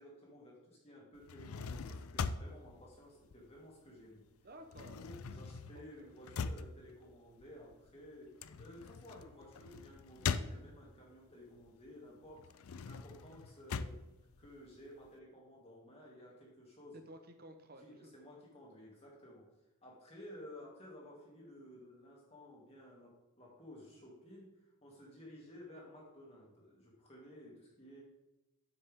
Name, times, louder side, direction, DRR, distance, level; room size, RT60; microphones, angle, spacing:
voice 1, 0.0-4.2 4.8-14.0 14.4-17.0 17.8-19.5 19.8-28.0, left 1 dB, 30° left, -3 dB, 2.8 m, -55 dB
sound 1, 1.1-4.0 4.3-11.1 11.6-15.1, left 5 dB, 80° left, 0.4 m, -42 dB
voice 2, 4.4-5.0 6.0-6.2 16.9-18.2, right 1 dB, 45° right, 6 dB, 1.0 m, -54 dB
9.6 x 7.4 x 3.7 m, 0.99 s
head